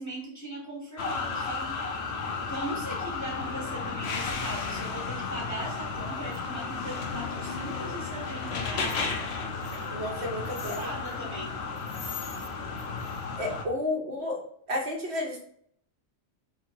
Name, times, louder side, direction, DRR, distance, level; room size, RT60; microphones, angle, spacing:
voice 1, 0.0-1.7 2.4-9.0 10.6-11.5, equal, 15° left, -1 dB, 0.8 m, -39 dB
sound 1, 1.0-13.7, left 4 dB, 65° left, 0.9 m, -33 dB
voice 2, 9.9-10.8 13.4-14.4 14.7-15.4, left 1 dB, 65° right, 0 dB, 1.2 m, -31 dB
3.7 x 2.7 x 4.4 m, 0.66 s
omnidirectional pair, 1.2 m